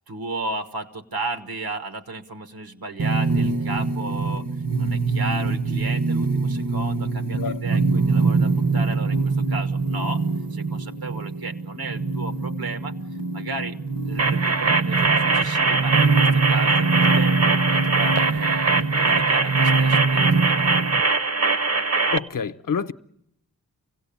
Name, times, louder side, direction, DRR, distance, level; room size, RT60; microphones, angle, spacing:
voice 1, 0.1-4.4 4.8-10.2 10.5-12.9 13.3-13.8 14.1-21.1, right 3 dB, 85° right, 1.4 m, -34 dB
sound 1, 3.0-21.0, right 4 dB, 65° right, 1.3 m, -24 dB
sound 2, 14.2-22.2, right 3 dB, 45° right, 0.8 m, -22 dB
voice 2, 22.1-22.9, left 6 dB, 65° left, 0.8 m, -27 dB
24.5 x 16.5 x 8.6 m
cardioid pair, 60°, 36 cm